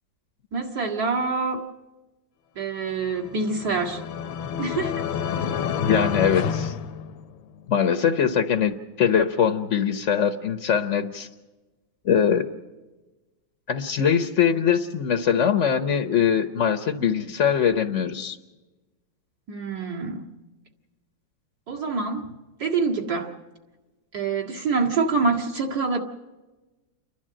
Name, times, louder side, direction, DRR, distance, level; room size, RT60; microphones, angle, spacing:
voice 1, 0.5-1.6 2.6-4.0 4.6-5.0 19.5-20.2 21.7-22.3 22.6-23.3 24.1-26.0, right 4 dB, 50° right, -1 dB, 2.4 m, -26 dB
sound 1, 3.1-7.7, left 7 dB, 75° left, 1.6 m, -29 dB
voice 2, 5.8-6.7 7.7-11.3 12.0-12.5 13.7-18.4, left 7 dB, 50° left, 7 dB, 1.0 m, -22 dB
29.5 x 12.0 x 7.6 m, 1.2 s
omnidirectional pair, 2.1 m